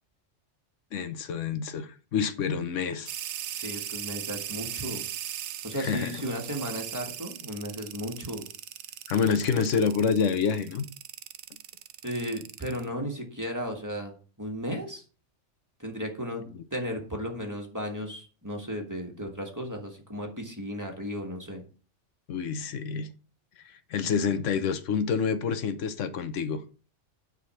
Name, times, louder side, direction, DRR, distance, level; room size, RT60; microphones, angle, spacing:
voice 1, 0.9-3.1 5.7-6.1 9.1-10.8 16.5-16.6 22.3-23.1 23.6-26.6, left 6 dB, 90° left, 1.1 m, -27 dB
sound 1, 3.1-12.8, right 11 dB, 75° right, 0.9 m, -38 dB
voice 2, 3.5-5.0 5.6-8.4 12.0-14.1 14.4-15.0 15.8-16.4 16.7-21.6, equal, 15° right, 1.5 m, -35 dB
9.4 x 4.0 x 5.6 m
omnidirectional pair, 1.3 m